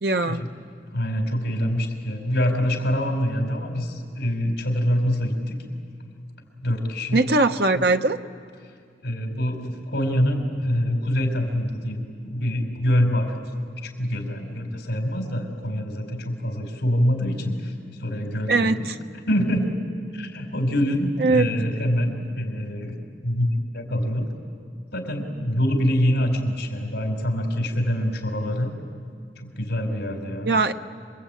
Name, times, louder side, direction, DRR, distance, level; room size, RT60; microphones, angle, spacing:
voice 1, 0.0-0.4 7.1-8.2 18.5-18.7 21.2-21.5 30.5-30.7, right 3 dB, 65° right, 7 dB, 0.9 m, -20 dB
voice 2, 0.9-5.6 6.6-7.2 7.7-7.8 9.0-13.4 13.8-17.7 18.0-18.9 19.3-19.8 20.1-23.0 23.2-24.3 24.9-28.7 29.4-30.5, equal, 75° left, 3 dB, 4.6 m, -25 dB
26.5 x 23.0 x 9.1 m, 2.2 s
head